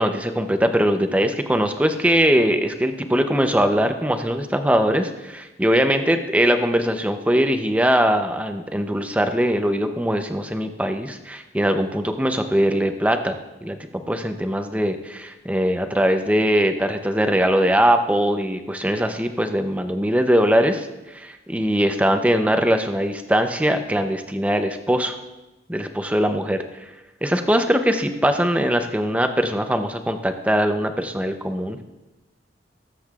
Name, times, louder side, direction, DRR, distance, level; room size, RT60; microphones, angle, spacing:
voice 1, 0.0-13.4 13.6-20.9 21.1-25.1 25.7-26.6 27.2-31.8, equal, 10° right, 7 dB, 0.6 m, -21 dB
20.0 x 7.7 x 2.4 m, 1.0 s
head